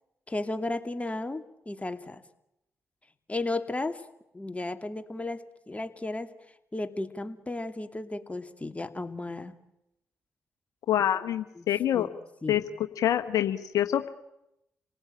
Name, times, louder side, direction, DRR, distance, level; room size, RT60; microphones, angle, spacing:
voice 1, 0.3-2.2 3.3-4.0 4.3-6.3 6.7-9.5 11.6-11.7 11.9-12.1 12.4-12.7, left 2 dB, 20° left, 8 dB, 2.5 m, -34 dB
voice 2, 10.9-12.1 12.5-14.1, left 11 dB, 75° left, 8 dB, 1.2 m, -26 dB
28.0 x 18.5 x 9.0 m, 0.85 s
hypercardioid pair, 45°, 6 cm